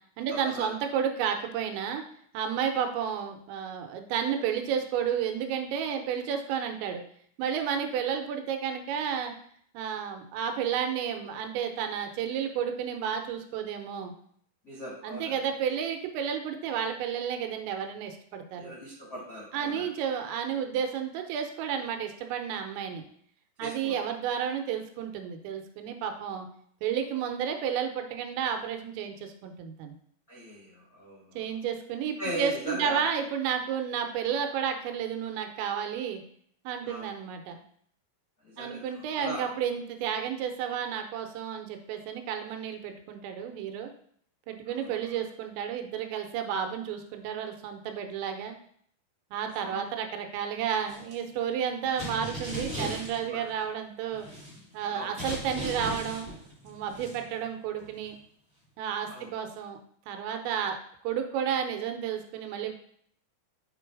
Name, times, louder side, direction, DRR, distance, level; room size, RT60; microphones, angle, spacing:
voice 1, 0.2-2.0 2.3-7.0 7.4-9.3 9.7-14.1 15.0-18.7 19.5-23.0 23.6-26.5 26.8-30.0 31.4-36.2 36.6-37.6 38.6-43.9 44.5-48.6 49.3-54.3 54.7-56.3 56.6-58.2 58.8-59.8 60.1-60.8 61.0-62.7, right 8 dB, 90° right, 5 dB, 3.1 m, -31 dB
voice 2, 14.6-15.3 18.6-19.8 23.6-23.9 30.3-31.4 32.2-33.1 36.8-37.1 38.4-38.8 39.1-39.4 44.7-45.0 49.6-49.8 52.6-52.9 53.2-53.4 54.9-55.1 59.0-59.3, equal, 60° left, -7 dB, 0.9 m, -39 dB
sound 1, 50.9-51.1 51.9-53.6 54.1-54.8 55.2-57.4 57.8-58.1, equal, 5° right, 1.2 m, -38 dB
7.6 x 3.8 x 4.6 m, 0.64 s
omnidirectional pair, 5.1 m